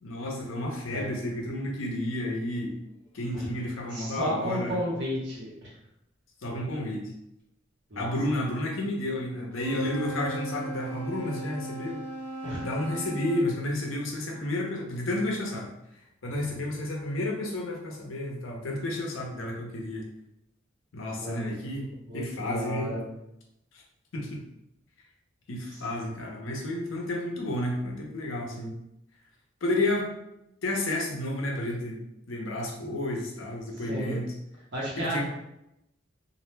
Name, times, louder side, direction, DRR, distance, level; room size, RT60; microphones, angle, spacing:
voice 1, 0.0-2.7 3.1-4.8 6.4-7.1 8.0-12.0 12.6-15.7 16.2-20.1 20.9-23.0 24.1-24.4 25.5-28.7 29.6-30.1 30.6-32.0 32.3-34.3 35.0-35.2, left 1 dB, 80° left, -1 dB, 0.6 m, -31 dB
voice 2, 3.9-5.7 7.9-8.1 12.4-12.7 21.1-23.2 25.7-25.8 33.9-34.2 34.7-35.2, equal, 60° right, -5 dB, 1.0 m, -33 dB
Wind instrument woodwind instrument, 9.5-13.5, right 2 dB, 10° left, 0.9 m, -37 dB
2.5 x 2.0 x 3.1 m, 0.83 s
head